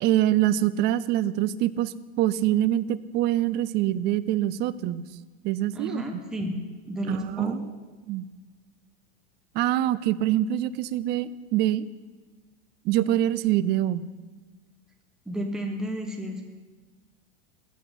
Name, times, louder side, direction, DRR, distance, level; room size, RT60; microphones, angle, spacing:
voice 1, 0.0-5.0 5.4-6.0 7.1-7.6 8.1-8.3 9.5-11.8 12.8-14.0, right 13 dB, 35° right, 16 dB, 0.5 m, -25 dB
voice 2, 5.7-6.6 6.9-7.6 15.2-16.5, equal, ahead, 2 dB, 1.2 m, -32 dB
14.5 x 6.1 x 10.0 m, 1.3 s
supercardioid pair, 145°, 32 cm